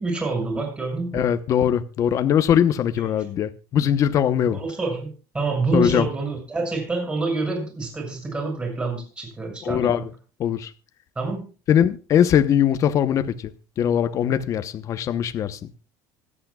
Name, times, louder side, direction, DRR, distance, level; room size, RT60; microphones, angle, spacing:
voice 1, 0.0-1.3 3.0-3.2 4.4-10.1 11.1-11.5, right 3 dB, 15° right, 6.4 m, -27 dB
voice 2, 1.1-4.6 5.7-6.1 9.6-10.0 10.4-10.7 11.7-13.3 13.8-15.6, left 9 dB, 40° left, 0.9 m, -21 dB
25.5 x 8.6 x 2.3 m
cardioid pair, 145°, 8 cm